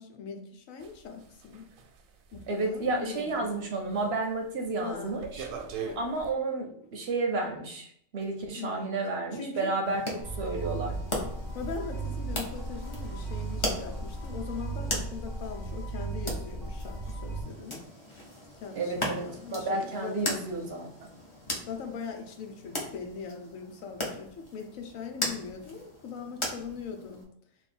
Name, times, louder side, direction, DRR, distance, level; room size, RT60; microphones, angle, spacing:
voice 1, 0.0-1.7 2.3-3.7 4.8-5.2 5.8-6.0 8.6-9.0 9.3-9.8 11.5-17.8 18.6-20.2 21.7-27.2, left 6 dB, 80° left, 4 dB, 1.1 m, -41 dB
sound 1, 0.8-3.6 3.9-4.3 4.6-6.3, right 7 dB, 85° right, 1.0 m, -42 dB
voice 2, 2.5-5.5 6.0-7.9 8.1-10.1 10.4-11.0 18.7-20.9, right 3 dB, 60° right, 2 dB, 0.7 m, -31 dB
sound 2, 9.8-27.2, left 1 dB, 30° left, 0.6 m, -39 dB
sound 3, 10.2-17.4, right 3 dB, 35° right, 0.4 m, -36 dB
3.2 x 2.6 x 4.2 m, 0.69 s
omnidirectional pair, 1.4 m